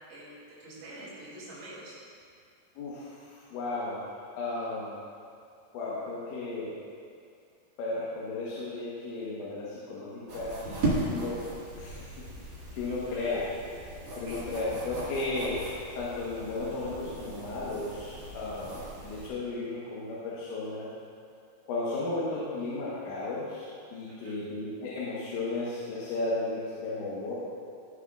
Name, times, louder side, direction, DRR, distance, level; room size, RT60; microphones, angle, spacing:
voice 1, 0.1-2.0 12.9-13.4 14.2-14.4 24.1-24.4, right 1 dB, 90° right, -10 dB, 4.6 m, -46 dB
voice 2, 2.8-4.0 4.4-5.0 5.7-6.8 7.8-11.4 11.8-12.1 12.7-13.7 14.2-15.6 16.0-20.9 21.7-27.4, left 2 dB, 90° left, -7 dB, 3.6 m, -34 dB
sound 1, 10.3-19.3, right 2 dB, 65° right, 0.9 m, -37 dB
16.5 x 6.2 x 2.4 m, 2.3 s
omnidirectional pair, 5.1 m